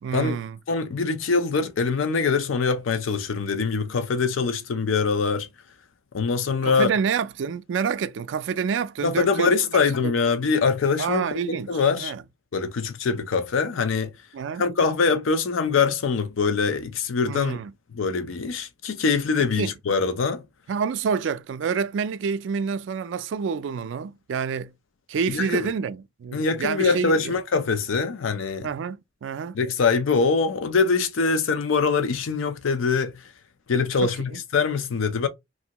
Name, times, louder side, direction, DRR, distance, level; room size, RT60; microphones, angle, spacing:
voice 1, 0.0-0.6 6.6-9.6 10.0-10.1 11.0-11.7 12.0-12.2 14.3-14.6 17.3-17.7 19.6-19.7 20.7-24.7 25.1-27.3 28.6-29.6 34.0-34.4, right 6 dB, 70° right, 0.3 m, -28 dB
voice 2, 0.7-5.5 6.1-6.9 9.0-12.1 12.5-14.1 14.6-17.6 17.9-20.4 25.3-25.7 26.3-28.7 29.5-33.3 33.7-35.3, left 5 dB, 90° left, 0.5 m, -23 dB
2.9 x 2.6 x 2.8 m
head